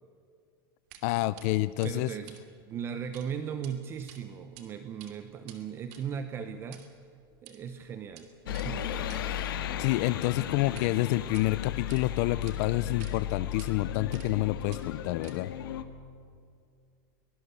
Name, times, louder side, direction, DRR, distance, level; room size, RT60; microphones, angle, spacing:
sound 1, 0.9-1.1 1.4-1.5 1.8-3.3 3.5-3.7 4.1-4.7 4.9-10.9 11.2-12.0 12.5-12.6 13.0-13.1 13.6-13.7 14.1-14.4 14.7-15.6, right 11 dB, 45° right, 2.7 m, -53 dB
voice 1, 1.0-2.1 9.8-15.5, left 18 dB, 40° left, 15 dB, 0.4 m, -28 dB
voice 2, 1.8-2.4 2.7-7.0 7.4-9.2, right 7 dB, 20° right, 9 dB, 0.9 m, -38 dB
sound 2, 8.5-15.8, left 10 dB, 80° left, 1.9 m, -35 dB
23.5 x 19.0 x 8.2 m, 2.4 s
supercardioid pair, 170°, 12 cm